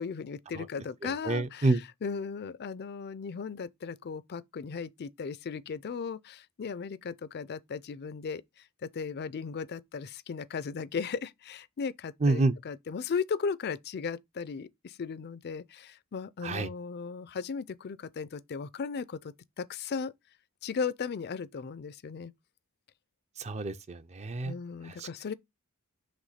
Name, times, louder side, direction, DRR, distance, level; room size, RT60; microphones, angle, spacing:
voice 1, 0.0-1.8 2.0-20.1 20.6-22.3 24.4-25.3, left 5 dB, 45° left, 0.4 m, -36 dB
voice 2, 1.0-1.8 12.2-12.5 16.4-16.7 23.4-24.5 24.8-25.1, right 2 dB, 30° right, 0.5 m, -28 dB
5.1 x 3.4 x 5.6 m
head